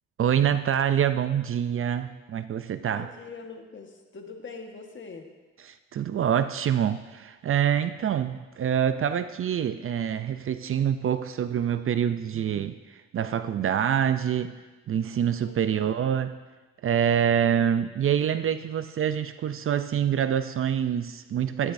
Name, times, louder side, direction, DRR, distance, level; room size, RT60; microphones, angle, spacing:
voice 1, 0.2-3.1 5.7-14.5 14.9-16.4 16.8-21.7, right 9 dB, 45° right, 11 dB, 0.5 m, -26 dB
voice 2, 2.9-5.3 15.4-16.0, left 4 dB, 40° left, 3 dB, 1.4 m, -43 dB
13.0 x 10.5 x 2.6 m, 1.2 s
cardioid pair, 90°, 30 cm